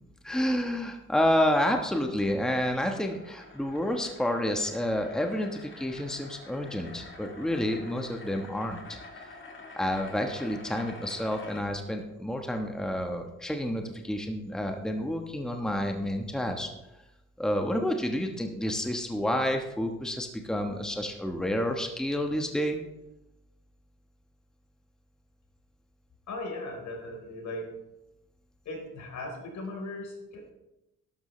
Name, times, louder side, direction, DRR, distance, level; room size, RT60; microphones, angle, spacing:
voice 1, 0.2-9.0 9.8-16.7 17.4-22.8, left 1 dB, ahead, 3 dB, 1.2 m, -29 dB
sound 1, 2.2-11.6, left 3 dB, 40° left, 2.4 m, -48 dB
voice 2, 26.3-27.7 28.7-30.5, left 2 dB, 70° left, 1 dB, 4.0 m, -38 dB
12.5 x 12.0 x 3.2 m, 0.95 s
cardioid pair, 90°, 30 cm